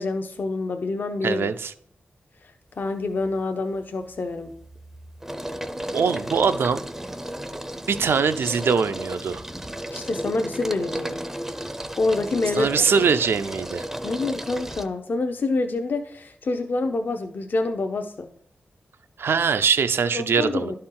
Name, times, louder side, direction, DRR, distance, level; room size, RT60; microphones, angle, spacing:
voice 1, 0.0-1.5 2.8-4.5 9.9-11.2 12.0-12.7 14.0-18.3 20.1-20.8, left 3 dB, 55° left, 5 dB, 0.5 m, -27 dB
voice 2, 1.2-1.7 5.9-6.8 7.9-9.4 12.6-13.9 19.2-20.8, right 5 dB, 80° right, 11 dB, 0.4 m, -22 dB
sound 1, 2.8-3.3 3.7-14.9, right 1 dB, 10° right, 0.5 m, -34 dB
11.5 x 4.4 x 3.8 m, 0.65 s
wide cardioid pair, 125°, 4 cm